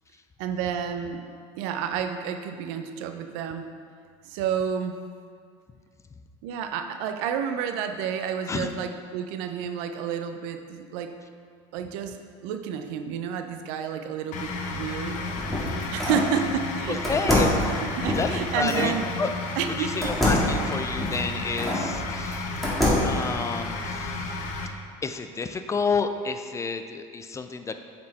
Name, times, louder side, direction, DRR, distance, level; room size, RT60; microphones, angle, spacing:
voice 1, 0.4-1.2 1.6-3.7 4.2-5.0 6.4-11.1 11.7-15.2 15.9-17.3 17.8-19.0 19.6-20.1, right 8 dB, 75° right, 7 dB, 0.6 m, -30 dB
sound 1, 14.3-24.7, left 3 dB, 55° left, 0.8 m, -33 dB
sound 2, 15.0-16.3 17.0-18.9 20.0-21.9 22.3-23.2, left 1 dB, ahead, 1.8 m, -26 dB
voice 2, 16.9-17.5 18.2-18.9 19.2-19.3 19.8-22.8 23.0-24.3 25.0-27.9, left 4 dB, 20° left, 8 dB, 0.3 m, -30 dB
7.5 x 4.3 x 4.2 m, 2.1 s
supercardioid pair, 110°, 16 cm